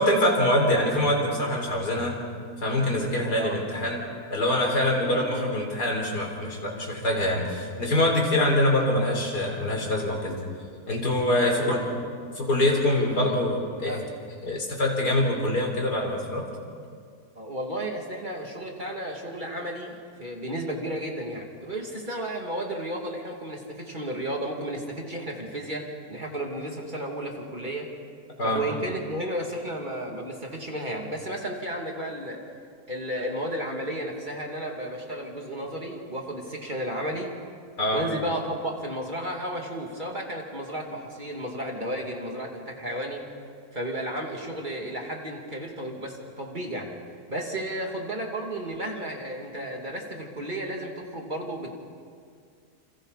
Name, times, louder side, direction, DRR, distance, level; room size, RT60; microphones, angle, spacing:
voice 1, 0.0-2.2 2.6-4.0 4.3-10.4 10.9-11.8 12.3-14.0 14.4-16.4 28.4-28.6 37.8-38.0, left 1 dB, 90° left, 0 dB, 4.4 m, -24 dB
voice 2, 5.1-5.5 11.4-11.8 13.0-13.4 13.8-14.1 17.4-27.9 28.4-32.4 32.9-37.3 37.9-43.2 43.7-46.9 47.3-51.9, right 1 dB, 30° right, 0 dB, 2.6 m, -33 dB
29.0 x 27.5 x 4.1 m, 2.2 s
omnidirectional pair, 1.7 m